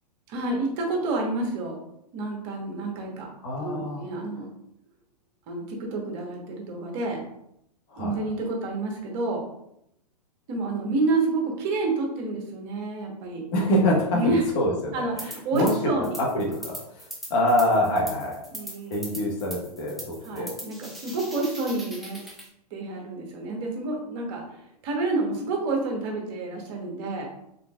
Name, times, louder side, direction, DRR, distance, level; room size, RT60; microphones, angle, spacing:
voice 1, 0.3-1.8 2.1-3.3 3.6-4.5 5.5-7.2 8.0-9.4 10.5-13.5 14.1-14.4 14.9-16.2 18.5-19.0 20.2-22.2 22.7-27.3, right 2 dB, 40° right, 0 dB, 1.1 m, -29 dB
voice 2, 3.4-4.0 7.9-8.2 13.5-15.7 16.0-18.4 18.9-20.6, left 1 dB, 45° left, -2 dB, 1.2 m, -26 dB
sound 1, 15.2-15.8 16.0-22.5, right 1 dB, ahead, 0.7 m, -40 dB
3.7 x 3.7 x 2.3 m, 0.77 s
hypercardioid pair, 120°, 21 cm